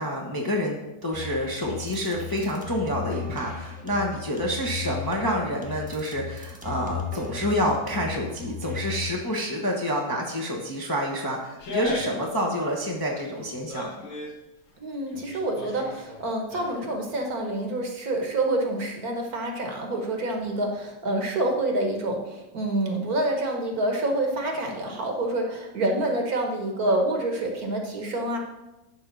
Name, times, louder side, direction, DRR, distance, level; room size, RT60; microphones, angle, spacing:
voice 1, 0.0-13.9, equal, 15° left, -1 dB, 0.9 m, -28 dB
sound 1, 1.1-9.1, left 6 dB, 5° right, 1.1 m, -36 dB
sound 2, 11.6-12.3 12.6-14.4 14.9-17.0 17.3-17.4, left 1 dB, 90° left, 1.8 m, -37 dB
voice 2, 14.8-28.4, right 1 dB, 55° right, 2 dB, 1.6 m, -27 dB
11.0 x 3.7 x 6.7 m, 0.99 s
omnidirectional pair, 2.0 m